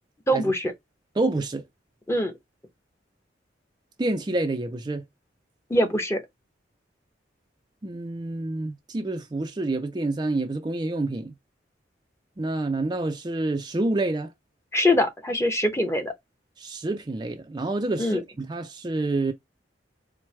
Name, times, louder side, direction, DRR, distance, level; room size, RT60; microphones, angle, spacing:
voice 1, 0.3-0.7 2.1-2.3 5.7-6.2 14.7-16.1 18.0-18.2, left 1 dB, 15° left, 0.8 m, -23 dB
voice 2, 1.2-1.6 4.0-5.1 7.8-11.3 12.4-14.3 16.6-19.3, right 2 dB, 25° right, 0.4 m, -28 dB
4.5 x 2.1 x 3.2 m
head